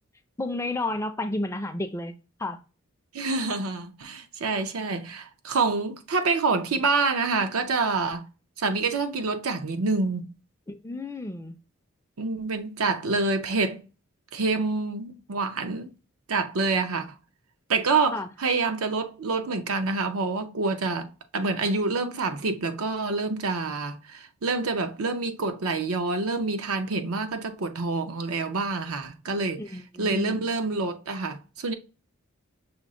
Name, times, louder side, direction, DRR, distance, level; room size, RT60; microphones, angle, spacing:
voice 1, 0.4-2.6 10.7-11.6 18.1-18.3 29.6-30.4, left 2 dB, 15° left, 0.4 m, -31 dB
voice 2, 3.1-8.3 8.6-10.3 12.2-13.8 14.3-15.9 16.3-17.1 17.7-29.6 30.0-31.7, right 3 dB, 90° right, 0.7 m, -27 dB
5.9 x 2.0 x 3.7 m
head